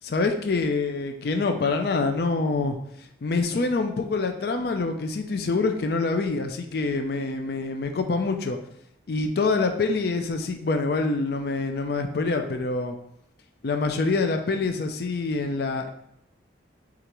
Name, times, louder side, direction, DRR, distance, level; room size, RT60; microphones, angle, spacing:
voice 1, 0.0-2.8 3.2-8.6 9.1-13.0 13.6-15.9, left 3 dB, 55° left, 6 dB, 0.4 m, -26 dB
6.4 x 2.5 x 3.0 m, 0.74 s
head